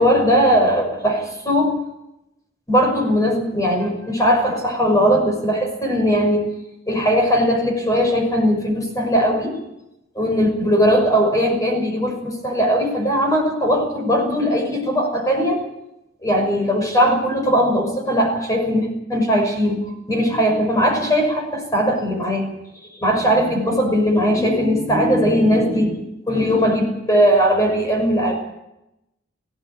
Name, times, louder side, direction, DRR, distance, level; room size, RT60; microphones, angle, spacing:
voice 1, 0.0-1.7 2.7-6.4 6.9-9.6 10.2-15.6 16.2-22.5 23.0-28.4, equal, 20° left, 2 dB, 6.0 m, -19 dB
19.0 x 16.0 x 9.1 m, 0.89 s
head